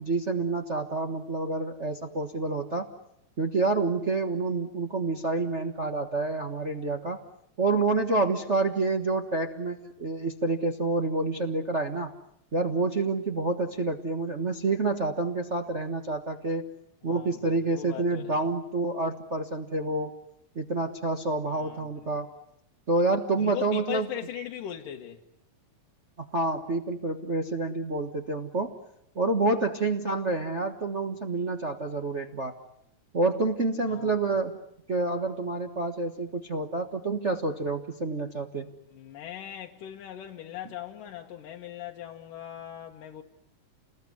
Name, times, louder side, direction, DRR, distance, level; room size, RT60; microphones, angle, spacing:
voice 1, 0.0-2.9 3.4-7.2 7.6-12.1 12.5-16.7 17.0-20.2 20.5-22.3 22.9-24.1 26.2-28.7 29.1-32.6 33.1-34.6 34.9-38.7, right 3 dB, 45° right, 0.9 m, -28 dB
voice 2, 17.0-18.3 21.5-21.9 23.4-25.2 33.9-34.4 38.9-43.2, left 11 dB, 85° left, 3.1 m, -39 dB
30.0 x 20.5 x 9.8 m
omnidirectional pair, 3.7 m